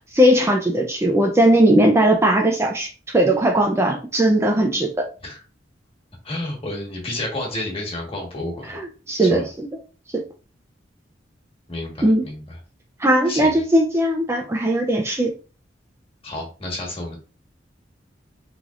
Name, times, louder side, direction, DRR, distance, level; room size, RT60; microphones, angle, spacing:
voice 1, 0.1-4.9 8.7-9.7 12.0-12.2 13.0-15.3, right 1 dB, 15° right, 0.4 m, -18 dB
voice 2, 6.2-8.8 9.2-9.4 11.7-12.6 13.3-13.6 16.2-17.2, left 1 dB, 30° left, 1.4 m, -30 dB
3.7 x 3.3 x 2.4 m
head